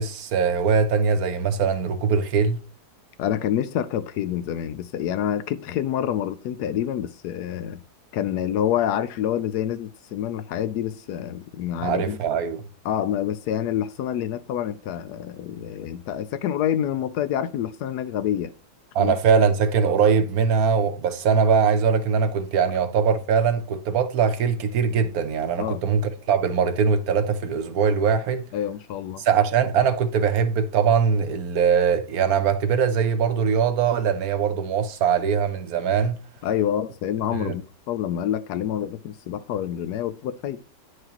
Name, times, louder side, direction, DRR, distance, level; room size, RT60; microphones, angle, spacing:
voice 1, 0.0-2.6 11.8-12.6 18.9-26.0 26.3-28.4 29.2-36.1 37.4-37.5, right 6 dB, 65° right, 1.1 m, -21 dB
voice 2, 3.2-7.8 8.1-12.2 12.8-18.5 19.0-19.1 25.6-25.8 28.5-29.2 36.4-40.6, left 10 dB, 75° left, 1.1 m, -27 dB
9.4 x 4.8 x 2.9 m
omnidirectional pair, 1.8 m